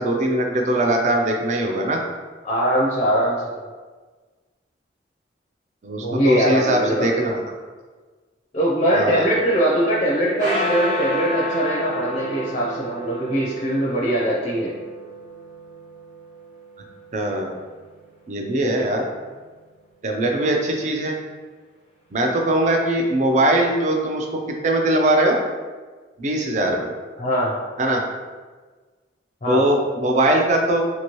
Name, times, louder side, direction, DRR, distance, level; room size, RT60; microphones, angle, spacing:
voice 1, 0.0-2.0 5.8-7.4 8.9-9.3 17.1-17.5 18.3-19.0 20.0-21.2 22.1-25.4 26.2-26.9 27.8-28.0 29.5-30.8, right 1 dB, 40° right, 2 dB, 0.4 m, -21 dB
voice 2, 2.4-3.6 6.0-7.1 8.5-14.7 27.2-27.5 29.4-29.6, right 1 dB, 35° left, -5 dB, 0.4 m, -21 dB
sound 1, 9.1-17.6, right 1 dB, 65° right, 0.9 m, -30 dB
2.8 x 2.6 x 2.9 m, 1.4 s
head